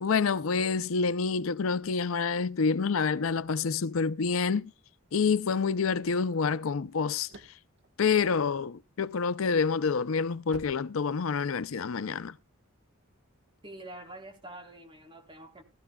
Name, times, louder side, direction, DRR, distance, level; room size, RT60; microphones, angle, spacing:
voice 1, 0.0-4.7 5.1-7.3 8.0-12.3, left 5 dB, 70° left, 0.5 m, -27 dB
sound 1, 7.2-9.0 9.5-11.7, right 3 dB, 60° right, 1.4 m, -51 dB
voice 2, 13.6-15.6, right 1 dB, 25° right, 3.8 m, -46 dB
17.5 x 13.5 x 2.3 m
head